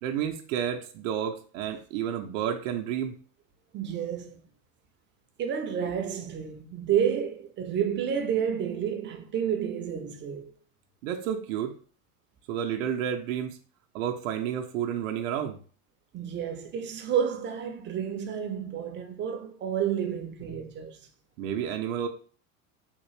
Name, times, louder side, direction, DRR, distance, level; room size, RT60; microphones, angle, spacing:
voice 1, 0.0-3.2 11.0-11.8 12.5-13.6 13.9-15.6 21.4-22.1, right 9 dB, 70° right, 0.6 m, -30 dB
voice 2, 3.7-4.4 5.4-10.5 16.1-21.1, right 8 dB, 30° right, 0.6 m, -30 dB
3.6 x 2.4 x 3.1 m
supercardioid pair, 110°, 41 cm